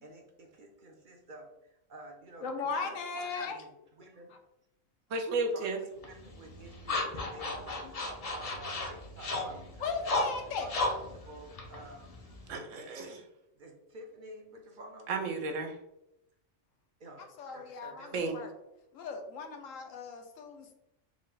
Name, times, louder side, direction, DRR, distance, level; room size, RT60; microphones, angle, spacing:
voice 1, 0.0-2.5 2.8-4.3 5.5-10.2 10.6-12.2 12.8-13.2 13.6-15.3 17.0-17.2 17.5-18.5, right 1 dB, 50° right, 2 dB, 0.7 m, -50 dB
voice 2, 2.4-3.6 4.3-4.4 9.8-10.7 17.2-18.5 18.9-20.7, left 4 dB, 85° left, 5 dB, 1.1 m, -37 dB
voice 3, 5.1-5.8 12.5-13.2 15.1-15.8 18.1-18.4, right 3 dB, 80° right, 4 dB, 1.0 m, -33 dB
sound 1, 6.0-12.5, left 2 dB, 45° left, 0.5 m, -35 dB
4.9 x 2.1 x 3.8 m, 0.85 s
omnidirectional pair, 1.3 m